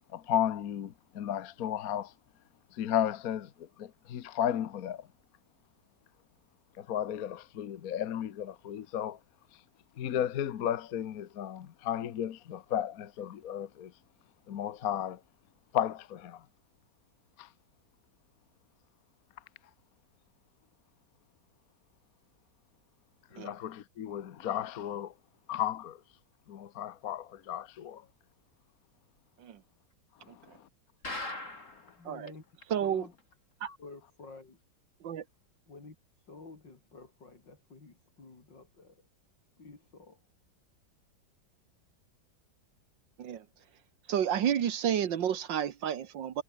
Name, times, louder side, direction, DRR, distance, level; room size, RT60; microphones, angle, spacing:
voice 1, 0.1-2.1 2.7-5.1 6.8-9.2 9.5-9.6 10.0-13.9 14.5-15.2 15.7-16.4 17.4-17.5 23.3-25.1 25.5-26.0 26.5-28.0 30.2-30.7 31.2-31.9, left 10 dB, 60° left, 1.3 m, -34 dB
sound 1, 31.0-31.9 32.3-32.4 32.6-32.7 33.2-33.3, left 2 dB, 40° left, 5.9 m, -39 dB
voice 2, 32.0-32.4 32.8-33.1 33.6-34.6 35.7-35.9 36.3-39.1 39.6-40.2, left 3 dB, 80° left, 5.1 m, -50 dB
voice 3, 32.7-33.0 35.0-35.2 43.2-43.4 44.1-46.4, right 9 dB, 85° right, 2.0 m, -30 dB
omnidirectional pair, 1.9 m